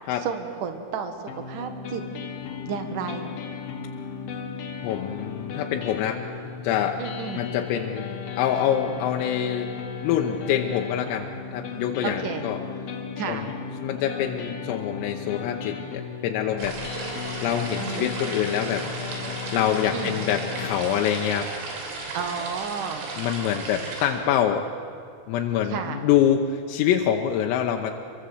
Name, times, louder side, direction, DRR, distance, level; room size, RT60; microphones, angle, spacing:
voice 1, 0.2-2.0 2.7-3.3 7.0-7.4 12.0-12.4 13.2-13.5 17.8-18.1 19.9-20.2 22.1-23.1 25.6-26.1, right 6 dB, 60° right, 7 dB, 2.2 m, -32 dB
sound 1, 1.3-20.8, left 6 dB, 55° left, 3.2 m, -35 dB
voice 2, 4.8-6.2 6.6-7.0 7.3-9.7 10.0-12.6 13.3-13.5 13.8-16.8 17.4-18.9 19.5-21.5 23.2-24.7 25.3-27.9, left 9 dB, 85° left, 3 dB, 3.7 m, -25 dB
sound 2, 16.6-24.1, right 3 dB, 80° right, 6.4 m, -35 dB
26.5 x 23.5 x 7.9 m, 2.4 s
omnidirectional pair, 5.9 m